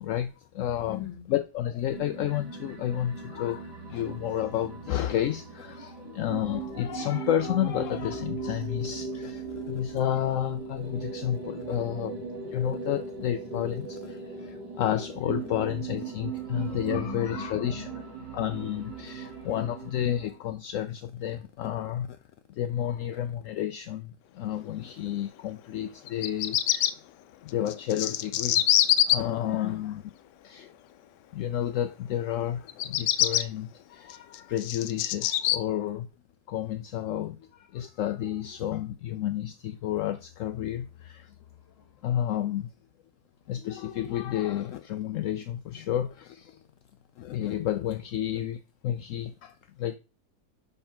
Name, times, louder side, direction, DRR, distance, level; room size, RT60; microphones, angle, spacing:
voice 1, 0.0-17.9 18.3-22.2 22.5-26.9 27.4-28.6 29.1-30.0 30.4-30.7 31.3-36.1 36.5-41.3 42.0-42.7 43.5-46.6 47.2-50.0, left 11 dB, 70° left, 0.7 m, -31 dB
voice 2, 0.9-1.3 14.4-18.4 18.7-19.5 29.5-29.8 41.4-42.1, left 7 dB, 25° left, 1.2 m, -44 dB
sound 1, 1.8-20.4, right 5 dB, 90° right, 2.7 m, -39 dB
Bird vocalization bird call bird song, 26.1-26.9 27.7-29.2 32.7-33.4 34.1-35.6, left 12 dB, 90° left, 1.2 m, -24 dB
5.5 x 5.4 x 5.8 m
omnidirectional pair, 1.8 m